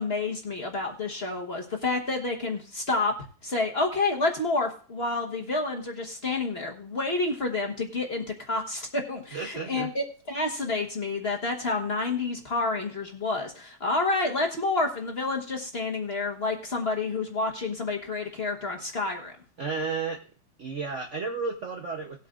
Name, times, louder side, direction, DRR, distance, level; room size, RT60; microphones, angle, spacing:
voice 1, 0.0-3.1 3.4-19.3, left 3 dB, 35° left, 1 dB, 1.3 m, -29 dB
voice 2, 9.3-9.9 19.6-20.2 20.6-22.3, right 4 dB, 50° right, 3 dB, 0.9 m, -32 dB
18.5 x 8.3 x 2.5 m, 0.39 s
omnidirectional pair, 2.2 m